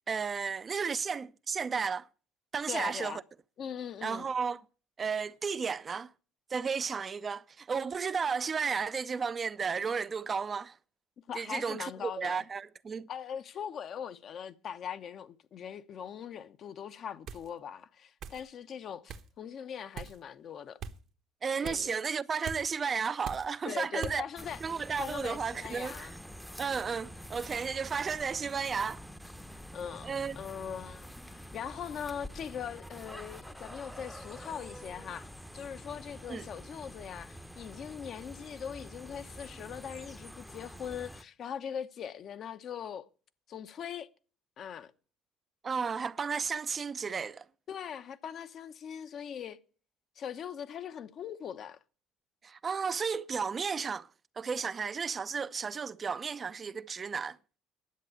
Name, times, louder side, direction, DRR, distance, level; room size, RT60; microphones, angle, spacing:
voice 1, 0.1-2.1 2.5-3.2 4.0-4.6 5.0-6.1 6.5-10.8 11.3-13.1 21.4-24.2 24.6-26.1 26.6-29.0 30.0-30.4 36.3-36.5 45.6-47.4 52.4-54.1 54.4-57.4, right 5 dB, 35° right, 0.5 m, -33 dB
voice 2, 2.7-3.2 3.6-4.3 11.3-12.5 13.1-20.8 21.6-21.9 23.6-24.6 25.0-26.1 29.5-35.3 35.5-43.1 43.5-44.1 44.6-44.9 47.7-49.6 50.2-51.8, left 8 dB, 55° left, 0.9 m, -41 dB
sound 1, 17.3-17.5 18.2-18.4 19.1-19.3 20.0-20.2 20.8-21.0 21.6-21.9 22.4-22.6 23.2-23.5 24.0-24.2, right 6 dB, 60° right, 1.1 m, -41 dB
sound 2, 24.4-41.2, equal, ahead, 0.8 m, -47 dB
10.5 x 7.8 x 8.2 m
hypercardioid pair, 70°, 0 cm